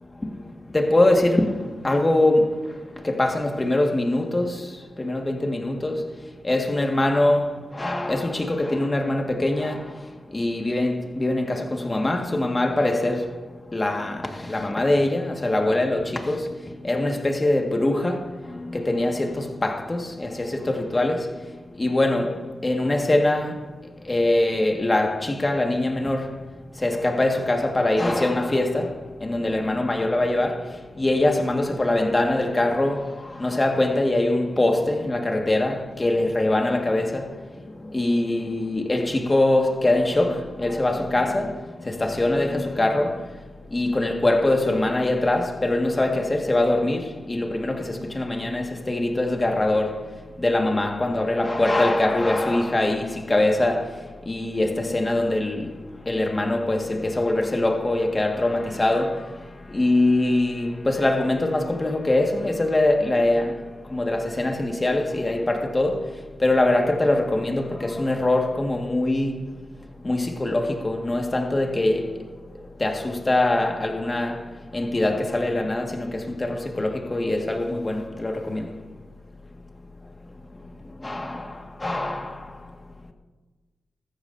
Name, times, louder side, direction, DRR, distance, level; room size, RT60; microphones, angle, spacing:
voice 1, 0.7-1.5 1.8-2.5 3.0-4.6 5.0-6.0 6.4-9.8 10.3-13.3 13.7-16.5 16.8-18.2 18.6-21.3 21.8-22.3 22.6-23.5 24.1-26.3 26.8-28.9 29.2-30.6 31.0-33.1 33.4-37.2 37.9-41.6 41.9-43.2 43.7-50.0 50.4-53.9 54.3-55.7 56.1-59.2 59.7-63.5 63.9-66.0 66.4-69.4 70.0-72.1 72.8-74.4 74.7-78.7 81.0-81.5 81.8-82.4, left 2 dB, 30° left, 1.9 m, -23 dB
15.5 x 13.5 x 2.8 m
cardioid pair, 45°, 0 cm